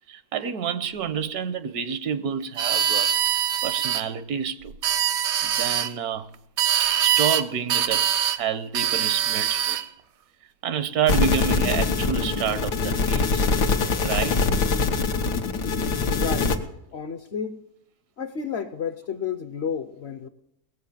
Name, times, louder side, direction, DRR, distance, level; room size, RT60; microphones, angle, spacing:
voice 1, 0.1-3.1 3.6-4.8 5.4-6.3 7.0-9.8 10.6-13.5 14.0-14.4, right 7 dB, 75° right, 1.2 m, -28 dB
sound 1, 2.6-4.0 4.7-5.9 6.6-7.4 7.7-8.4 8.7-9.9, right 10 dB, 60° right, 0.8 m, -23 dB
sound 2, 11.1-16.6, left 4 dB, 90° left, 1.7 m, -23 dB
voice 2, 16.1-16.6 16.9-17.6 18.2-20.3, left 7 dB, 55° left, 0.8 m, -31 dB
18.5 x 7.5 x 7.2 m
omnidirectional pair, 1.7 m